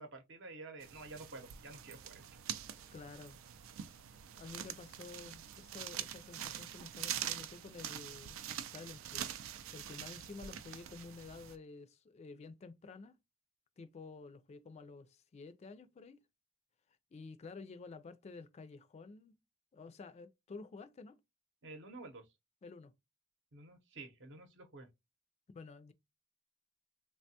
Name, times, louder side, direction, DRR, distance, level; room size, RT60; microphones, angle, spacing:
voice 1, 0.0-2.2 21.6-22.3 23.5-24.9, right 3 dB, 65° right, 0.8 m, -50 dB
sound 1, 0.8-11.6, right 10 dB, 90° right, 0.4 m, -45 dB
voice 2, 2.9-3.4 4.3-13.1 13.8-16.2 17.1-19.4 19.7-21.2 22.6-22.9 25.5-25.9, left 4 dB, 35° left, 0.3 m, -51 dB
3.2 x 2.2 x 2.6 m
head